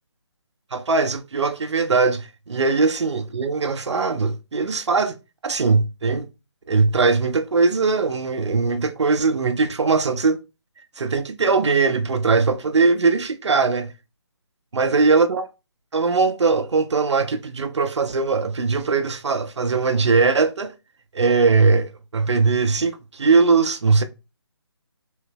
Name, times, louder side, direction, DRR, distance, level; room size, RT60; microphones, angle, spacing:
voice 1, 0.7-5.1 5.4-6.3 6.7-10.4 11.0-13.9 14.7-15.5 15.9-20.7 21.1-24.0, right 4 dB, 85° right, 0.7 m, -20 dB
3.3 x 3.1 x 3.4 m
hypercardioid pair, 165°, 15 cm